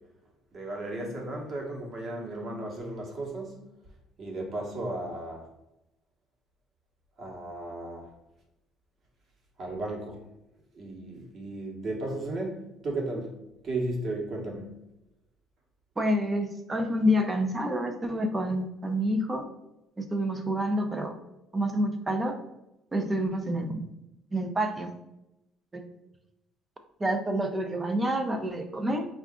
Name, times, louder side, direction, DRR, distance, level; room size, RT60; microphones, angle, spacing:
voice 1, 0.5-3.6 4.2-5.5 7.2-8.1 9.6-10.2 10.7-13.4 13.6-14.7, right 2 dB, 40° right, 0 dB, 1.1 m, -35 dB
voice 2, 16.0-19.5 20.0-21.1 21.5-22.4 22.9-23.8 24.3-24.9 25.7-25.8 27.0-29.1, equal, 15° right, 6 dB, 0.5 m, -28 dB
4.6 x 2.5 x 3.6 m, 0.90 s
cardioid pair, 135°, 0 cm